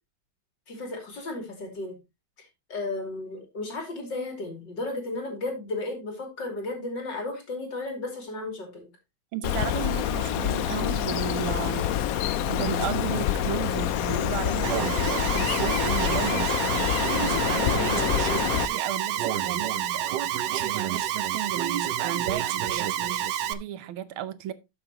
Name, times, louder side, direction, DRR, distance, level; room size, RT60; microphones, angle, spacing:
voice 1, 0.7-2.0 2.4-8.9 17.8-18.5, left 2 dB, 60° left, 3.4 m, -34 dB
voice 2, 9.3-11.9 12.5-16.5 17.1-18.1 18.4-20.1 20.5-24.5, right 11 dB, 85° right, 1.7 m, -35 dB
Bird, 9.4-18.7, left 10 dB, 85° left, 0.7 m, -26 dB
Alarm, 14.6-23.5, right 11 dB, 70° right, 1.2 m, -28 dB
13.0 x 6.6 x 2.9 m
omnidirectional pair, 2.2 m